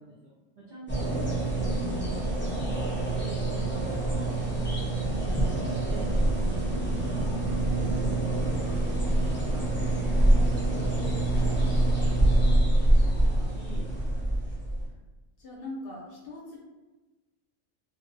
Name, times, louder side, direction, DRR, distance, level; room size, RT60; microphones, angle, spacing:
voice 1, 0.0-5.0 5.5-7.3 7.5-14.0, right 1 dB, 75° right, -6 dB, 0.4 m, -47 dB
sound 1, 0.9-14.9, right 1 dB, 15° left, 0.3 m, -25 dB
voice 2, 1.1-1.4 15.4-16.6, left 2 dB, 60° left, -3 dB, 0.6 m, -40 dB
2.5 x 2.0 x 2.5 m, 1.2 s
omnidirectional pair, 1.4 m